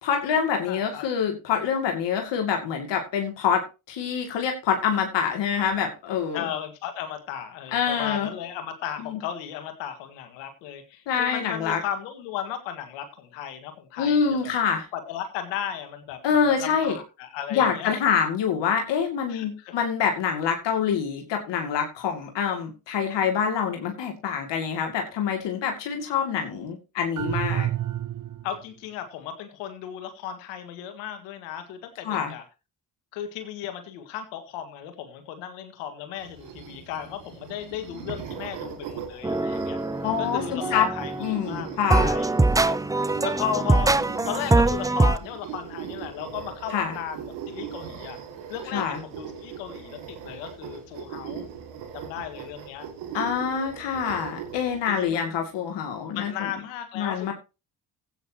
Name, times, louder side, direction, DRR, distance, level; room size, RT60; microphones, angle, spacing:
voice 1, 0.0-6.5 7.7-8.3 9.0-9.2 11.1-11.8 14.0-14.9 16.2-17.0 17.5-27.7 32.0-32.3 40.0-40.9 41.2-42.1 46.7-46.9 48.7-49.0 53.1-56.5 57.0-57.3, left 7 dB, 75° left, 3 dB, 2.5 m, -26 dB
voice 2, 0.7-1.0 6.3-14.5 14.9-16.2 16.5-17.9 19.3-19.8 28.4-32.4 33.1-39.8 40.2-42.3 42.6-44.0 44.3-48.2 48.5-51.5 51.9-52.9 54.9-55.3 56.1-57.3, left 9 dB, 90° left, 7 dB, 1.9 m, -35 dB
sound 1, 27.2-28.6, right 12 dB, 45° right, 0.8 m, -29 dB
sound 2, 36.2-54.8, right 8 dB, 85° right, 2.4 m, -40 dB
sound 3, 39.2-41.5 41.9-45.2, right 2 dB, 10° right, 0.6 m, -23 dB
15.0 x 9.2 x 2.9 m, 0.29 s
hypercardioid pair, 50°, 43 cm